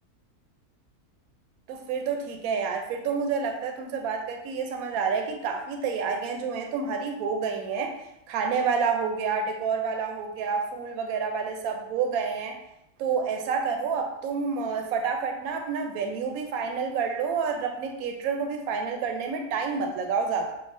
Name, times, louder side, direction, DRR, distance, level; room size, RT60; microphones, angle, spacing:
voice 1, 1.7-8.0 8.3-12.6 13.0-20.5, right 5 dB, 75° right, 4 dB, 1.0 m, -29 dB
6.6 x 2.3 x 2.5 m, 0.83 s
omnidirectional pair, 1.6 m